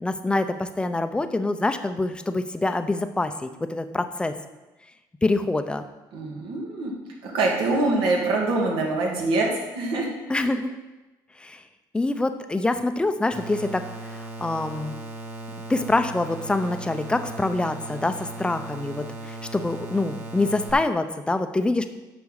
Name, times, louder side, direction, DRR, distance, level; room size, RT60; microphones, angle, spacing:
voice 1, 0.0-4.3 5.2-5.8 10.3-10.7 11.4-11.6 11.9-15.0 15.7-21.9, left 2 dB, 10° left, 9 dB, 0.6 m, -25 dB
voice 2, 6.1-6.9 7.2-10.1 10.4-10.5, right 2 dB, 80° right, -1 dB, 2.4 m, -24 dB
sound 1, 13.3-20.7, right 2 dB, 25° right, 1.7 m, -37 dB
8.4 x 6.0 x 6.5 m, 1.1 s
cardioid pair, 130°, 9 cm